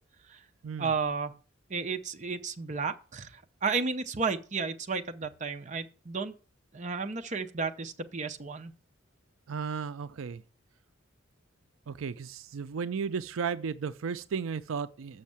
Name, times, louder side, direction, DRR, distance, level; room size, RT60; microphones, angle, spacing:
voice 1, 0.8-1.3 1.7-6.3 6.7-8.7, right 4 dB, 40° right, 0.7 m, -33 dB
voice 2, 9.5-10.4 11.9-15.2, right 6 dB, 85° right, 0.4 m, -34 dB
6.5 x 6.3 x 7.2 m
head